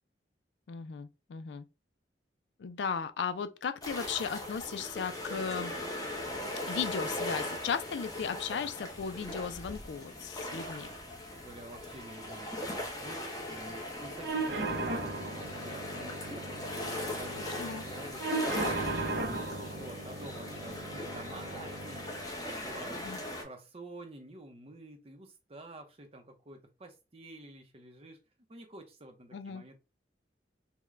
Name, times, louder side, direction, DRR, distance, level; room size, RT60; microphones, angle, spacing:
voice 1, 0.7-1.6 2.6-5.7 6.7-10.9 17.6-17.8 23.0-23.2 29.3-29.6, left 6 dB, 75° left, 0.4 m, -36 dB
sound 1, 3.8-23.4, left 1 dB, 20° left, 0.7 m, -39 dB
voice 2, 11.3-19.5 19.8-28.2 28.5-29.8, right 2 dB, 35° right, 0.6 m, -50 dB
sound 2, 14.2-22.2, right 2 dB, 70° right, 0.7 m, -37 dB
3.6 x 2.2 x 3.1 m
head